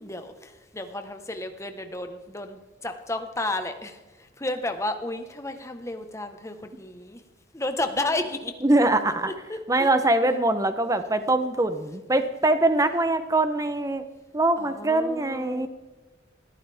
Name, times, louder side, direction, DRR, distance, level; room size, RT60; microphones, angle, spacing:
voice 1, 0.0-7.2 7.5-8.5 9.5-10.3 14.6-15.7, left 2 dB, 15° left, 7 dB, 1.2 m, -32 dB
voice 2, 8.6-9.3 9.7-14.0 14.3-15.7, right 2 dB, 20° right, 10 dB, 0.8 m, -23 dB
20.5 x 14.0 x 3.5 m, 1.2 s
head